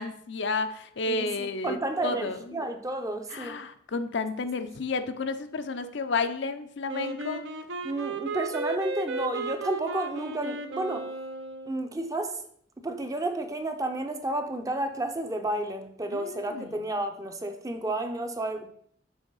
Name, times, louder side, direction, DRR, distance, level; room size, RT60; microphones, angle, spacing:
voice 1, 0.0-2.6 3.3-7.5 16.1-16.7, left 3 dB, 65° left, 9 dB, 0.5 m, -31 dB
voice 2, 1.1-3.6 7.8-11.1 11.7-12.4 12.8-18.7, right 2 dB, 20° right, 6 dB, 0.6 m, -31 dB
Wind instrument woodwind instrument, 6.9-11.9, right 3 dB, 70° right, 0.7 m, -35 dB
6.3 x 3.9 x 5.4 m, 0.65 s
head